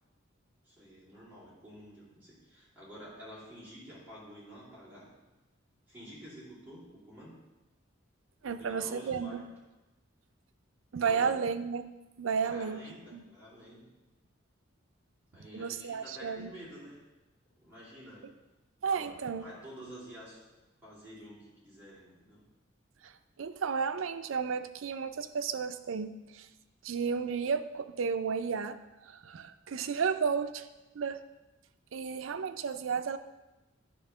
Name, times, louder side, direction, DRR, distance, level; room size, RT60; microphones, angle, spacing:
voice 1, 0.6-5.2 5.9-7.4 8.4-9.6 11.0-11.3 12.4-14.0 15.3-17.1 17.6-18.4 18.9-20.5 20.8-22.5, equal, 10° right, -9 dB, 2.8 m, -49 dB
voice 2, 8.4-9.4 10.9-11.9 12.2-13.2 15.5-16.5 18.8-19.5 23.0-23.1 23.4-26.5 26.8-30.7 30.9-31.2 31.9-33.2, right 6 dB, 80° right, 10 dB, 0.5 m, -33 dB
10.5 x 3.6 x 5.5 m, 1.0 s
head